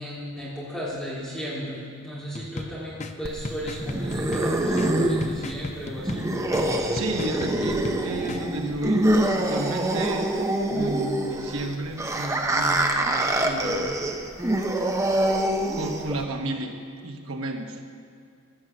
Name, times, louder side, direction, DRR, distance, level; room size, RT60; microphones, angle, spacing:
voice 1, 0.0-6.3, equal, 5° left, -9 dB, 3.2 m, -35 dB
sound 1, 2.3-8.4, left 2 dB, 30° left, 0.5 m, -38 dB
sound 2, 3.2-16.2, right 1 dB, 15° right, 0.6 m, -25 dB
voice 2, 6.9-10.3 10.7-14.0 15.7-16.8 17.0-17.8, right 2 dB, 75° right, 3 dB, 1.2 m, -32 dB
15.0 x 6.4 x 6.7 m, 2.4 s
head